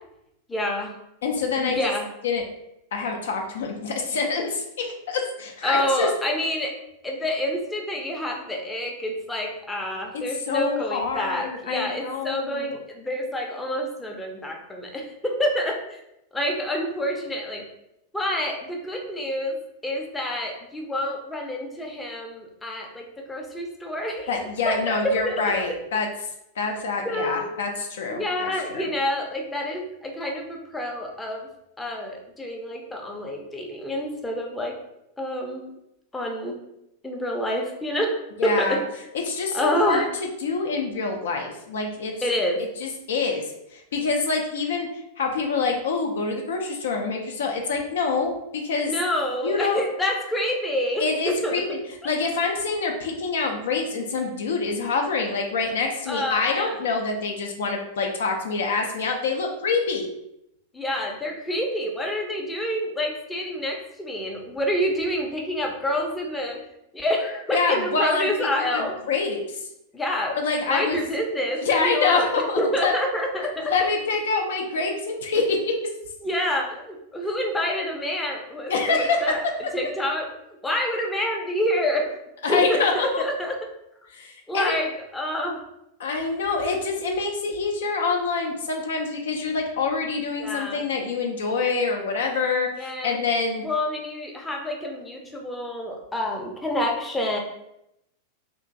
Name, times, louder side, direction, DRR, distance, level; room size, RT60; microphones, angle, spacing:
voice 1, 0.5-0.9 1.5-2.1 5.6-6.7 7.0-15.8 16.3-17.6 18.1-19.6 19.8-24.3 24.6-24.8 25.0-25.6 27.0-27.5 28.1-31.5 31.8-34.8 35.2-35.7 36.1-36.6 37.0-38.8 39.5-40.1 42.2-42.6 48.8-51.6 52.0-52.1 56.1-56.8 60.7-66.6 66.9-69.2 69.9-70.3 70.7-72.3 72.6-73.9 75.3-75.5 76.2-79.4 79.7-80.3 80.6-82.1 82.5-83.6 84.5-85.6 90.4-90.8 92.8-93.2 93.6-97.4, equal, 10° left, 0 dB, 0.5 m, -27 dB
voice 2, 1.2-1.8 2.2-2.4 2.9-6.1 10.5-12.8 24.3-26.1 26.6-28.9 38.4-38.8 39.2-40.1 40.4-42.1 42.8-43.5 43.7-48.9 49.4-49.8 51.0-51.8 52.0-60.1 67.5-69.4 70.3-71.0 71.6-72.9 73.6-75.9 78.7-79.3 82.4-83.2 84.1-84.8 86.0-93.6, left 4 dB, 60° left, 2 dB, 0.4 m, -26 dB
2.9 x 2.4 x 2.5 m, 0.83 s
figure-of-eight pair, 90°, 0 cm